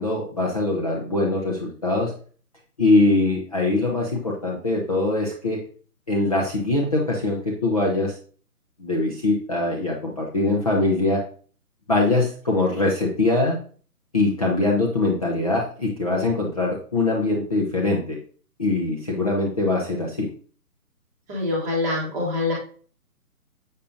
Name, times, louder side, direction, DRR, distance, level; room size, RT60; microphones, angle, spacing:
voice 1, 0.0-2.1 2.8-5.6 6.1-8.2 8.8-11.2 11.9-13.6 14.1-18.2 18.6-20.3, left 2 dB, 25° left, -2 dB, 0.7 m, -22 dB
voice 2, 21.3-22.5, left 2 dB, 10° right, -4 dB, 1.1 m, -25 dB
7.0 x 6.6 x 2.5 m, 0.43 s
hypercardioid pair, 165°, 45 cm